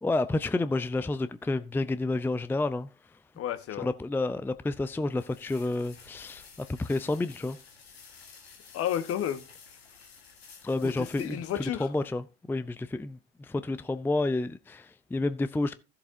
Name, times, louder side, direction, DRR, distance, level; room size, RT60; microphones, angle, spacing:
voice 1, 0.0-2.9 3.8-7.6 10.6-15.7, left 2 dB, 5° left, 0.5 m, -30 dB
voice 2, 3.4-3.9 8.7-9.4 10.8-11.9, left 10 dB, 50° left, 1.2 m, -32 dB
sound 1, 4.3-12.1, left 5 dB, 85° left, 1.5 m, -53 dB
15.5 x 6.9 x 2.7 m
figure-of-eight pair, 60°, 30 cm